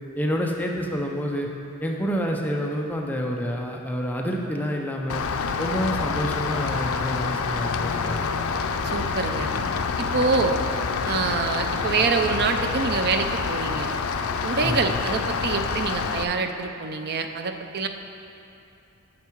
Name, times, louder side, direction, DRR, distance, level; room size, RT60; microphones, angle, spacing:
voice 1, 0.2-1.5 1.8-5.2 5.6-8.3 14.6-15.0, equal, 10° left, 0 dB, 0.5 m, -28 dB
Rain, 5.1-16.2, left 5 dB, 80° left, 0.5 m, -27 dB
voice 2, 8.8-9.5 10.0-10.6 11.0-13.9 14.4-17.9, right 4 dB, 50° right, 6 dB, 0.5 m, -26 dB
9.3 x 6.5 x 4.5 m, 2.7 s
head